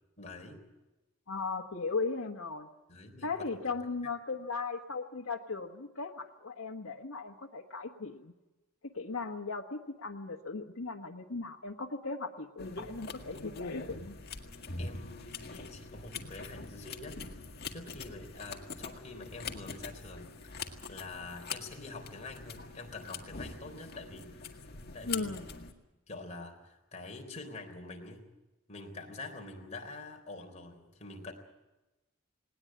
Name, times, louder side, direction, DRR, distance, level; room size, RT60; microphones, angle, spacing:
voice 1, 0.2-0.6 2.9-3.3 14.8-24.4 24.9-25.7 26.1-28.3 28.7-31.3, left 3 dB, 35° left, 3 dB, 3.8 m, -46 dB
voice 2, 1.3-2.7 3.2-8.3 8.9-14.1 25.0-25.5, left 4 dB, 90° left, 2 dB, 1.4 m, -37 dB
sound 1, 12.6-25.7, left 4 dB, 50° left, 1.9 m, -43 dB
19.5 x 19.0 x 8.8 m, 1.1 s
head